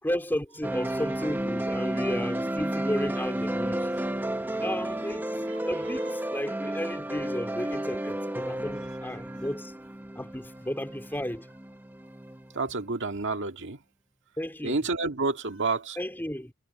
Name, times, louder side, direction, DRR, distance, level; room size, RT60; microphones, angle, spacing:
voice 1, 0.0-3.9 4.6-5.3 5.6-9.7 10.2-11.5 14.4-14.8 16.0-16.5, equal, 10° left, 3.9 m, -33 dB
sound 1, 0.6-12.7, right 1 dB, 10° right, 0.8 m, -32 dB
voice 2, 12.5-13.8 14.6-16.0, right 3 dB, 55° right, 1.9 m, -29 dB
head